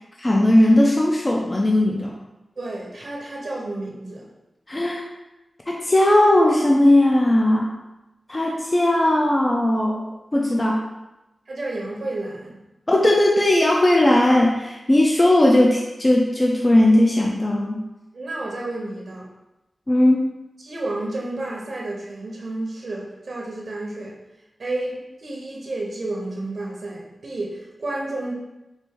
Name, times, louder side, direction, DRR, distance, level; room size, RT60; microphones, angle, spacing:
voice 1, 0.2-2.1 4.7-5.0 5.7-7.7 8.3-10.0 10.3-10.8 12.9-17.8 19.9-20.3, left 1 dB, 25° left, -1 dB, 0.4 m, -18 dB
voice 2, 2.6-4.3 11.5-12.6 18.1-19.3 20.6-24.1 24.6-28.3, right 2 dB, 60° right, -2 dB, 0.7 m, -31 dB
4.4 x 2.5 x 3.5 m, 0.97 s
wide cardioid pair, 110°, 0 cm